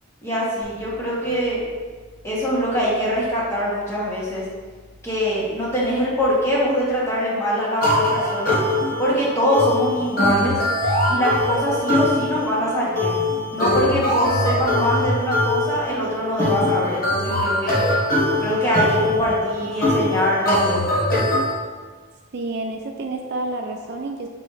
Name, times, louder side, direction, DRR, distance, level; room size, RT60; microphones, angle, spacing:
voice 1, 0.2-1.6 2.2-4.4 5.0-8.6 9.0-10.6 11.1-13.1 13.5-17.7 18.4-21.0, equal, 15° left, -7 dB, 1.5 m, -23 dB
sound 1, 0.6-6.8, left 1 dB, 60° left, 1.5 m, -49 dB
sound 2, 7.8-21.5, left 1 dB, 45° left, 1.2 m, -22 dB
voice 2, 22.3-24.3, right 2 dB, 50° right, 3 dB, 0.4 m, -29 dB
7.5 x 4.1 x 3.2 m, 1.5 s
head